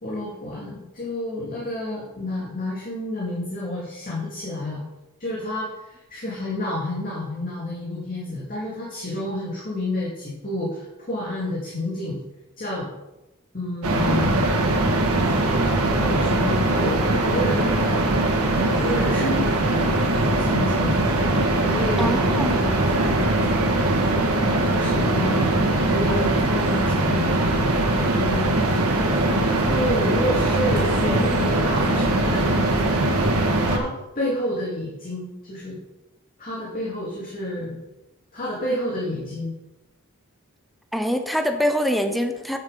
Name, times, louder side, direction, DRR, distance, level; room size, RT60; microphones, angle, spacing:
voice 1, 0.0-4.8 5.2-12.2 12.6-12.9 13.5-14.4 15.9-17.9 18.8-19.9 20.2-21.0 21.6-22.2 22.4-22.7 22.9-23.2 24.6-28.5 29.4-32.6 33.6-35.8 36.4-37.8 38.3-39.5, left 1 dB, 40° left, -5 dB, 2.4 m, -29 dB
sound 1, 13.8-33.8, right 2 dB, 80° right, 1.7 m, -21 dB
voice 2, 22.0-22.6 40.9-42.6, equal, ahead, 5 dB, 0.8 m, -24 dB
9.1 x 7.3 x 5.3 m, 0.98 s
head